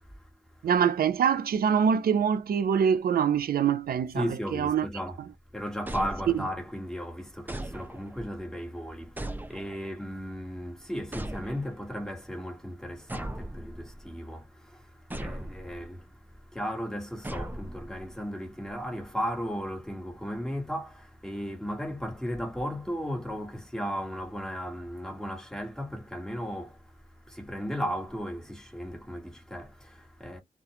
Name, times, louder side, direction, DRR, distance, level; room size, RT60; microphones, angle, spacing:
voice 1, 0.0-0.8 4.1-30.4, equal, 5° left, 1.3 m, -36 dB
voice 2, 0.6-4.9, right 7 dB, 85° right, 0.4 m, -24 dB
sound 1, 5.9-6.7 7.5-8.3 9.2-10.0 11.1-11.9 13.1-14.1 15.1-15.9 17.2-18.2, right 1 dB, 10° right, 0.6 m, -38 dB
2.4 x 2.2 x 2.8 m
cardioid pair, 75°, 15 cm